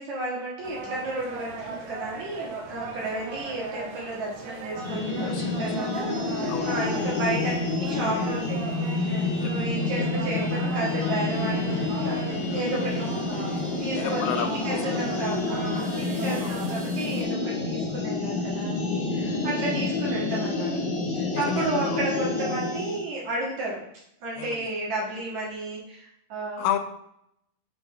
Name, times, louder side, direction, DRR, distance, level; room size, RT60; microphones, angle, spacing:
voice 1, 0.0-8.6 9.0-13.1 13.4-23.8 24.2-26.7, right 2 dB, 55° right, -6 dB, 2.6 m, -33 dB
sound 1, 0.6-17.2, right 4 dB, 80° right, 1.7 m, -38 dB
sound 2, 4.8-23.0, left 3 dB, 50° left, 1.5 m, -28 dB
voice 2, 5.3-5.7 6.5-6.7 9.3-9.7 12.5-12.6 13.9-14.9 16.4-16.6 21.3-22.0 24.4-24.7 26.6-26.8, left 11 dB, 90° left, 9 dB, 2.6 m, -32 dB
6.9 x 3.5 x 4.5 m, 0.76 s
omnidirectional pair, 4.5 m